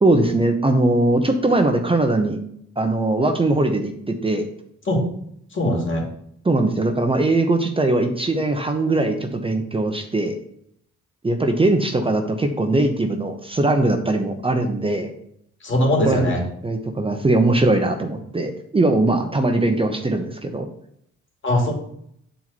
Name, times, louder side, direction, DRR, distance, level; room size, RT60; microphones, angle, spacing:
voice 1, 0.0-2.4 2.8-4.5 6.4-10.4 11.2-15.1 16.0-16.3 16.6-20.7, right 2 dB, 20° right, 4 dB, 0.9 m, -20 dB
voice 2, 5.5-6.0 15.6-16.4 21.4-21.7, left 1 dB, 40° left, 0 dB, 2.8 m, -20 dB
9.1 x 4.6 x 4.2 m, 0.70 s
cardioid pair, 90°, 30 cm